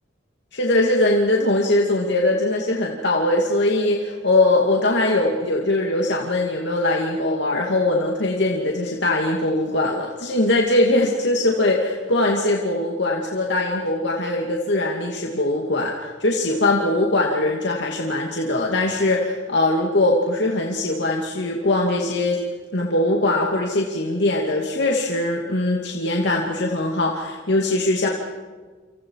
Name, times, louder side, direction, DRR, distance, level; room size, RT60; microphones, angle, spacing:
voice 1, 0.5-22.4 22.7-28.1, left 2 dB, 65° left, 0 dB, 2.6 m, -21 dB
29.0 x 27.0 x 4.9 m, 1.4 s
head